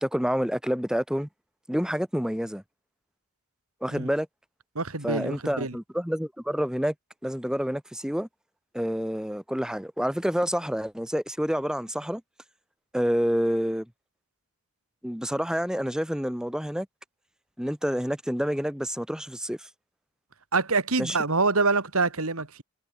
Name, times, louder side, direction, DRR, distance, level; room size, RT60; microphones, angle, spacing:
voice 1, 0.0-1.3 1.7-2.6 3.8-4.3 5.0-6.9 7.2-8.3 8.7-12.2 12.9-13.9 15.0-16.9 17.6-19.7 21.0-21.2, equal, 5° right, 1.1 m, -28 dB
voice 2, 4.7-5.7 20.5-22.6, right 3 dB, 80° right, 2.6 m, -25 dB
head